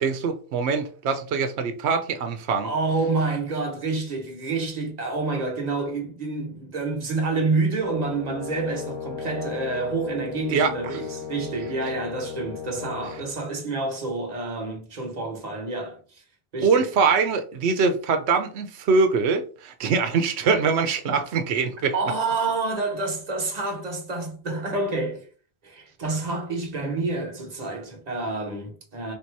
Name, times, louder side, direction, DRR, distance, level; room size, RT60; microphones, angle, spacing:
voice 1, 0.0-2.7 10.5-11.0 16.6-21.9, right 5 dB, 90° right, 0.9 m, -23 dB
voice 2, 2.6-16.2 16.5-16.9 21.0-21.2 21.9-25.2 25.6-29.1, right 3 dB, 40° right, 1.2 m, -28 dB
Brass instrument, 7.8-13.3, left 7 dB, 30° left, 0.7 m, -36 dB
3.4 x 2.8 x 4.5 m
omnidirectional pair, 1.1 m